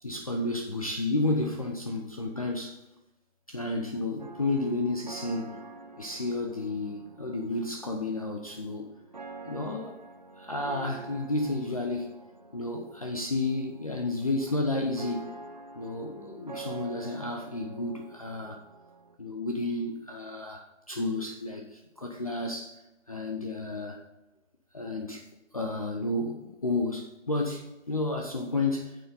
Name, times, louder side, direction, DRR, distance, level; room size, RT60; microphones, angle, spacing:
voice 1, 0.0-2.8 3.5-5.6 6.0-8.9 9.4-10.0 10.4-12.2 12.5-15.4 15.7-18.6 19.2-20.6 20.9-22.8 23.1-24.0 24.7-25.2 25.5-29.0, left 2 dB, 30° left, 2 dB, 0.6 m, -31 dB
sound 1, 4.2-19.2, right 3 dB, 35° right, 0.5 m, -47 dB
8.9 x 7.1 x 4.0 m, 0.98 s
figure-of-eight pair, 165°, 37 cm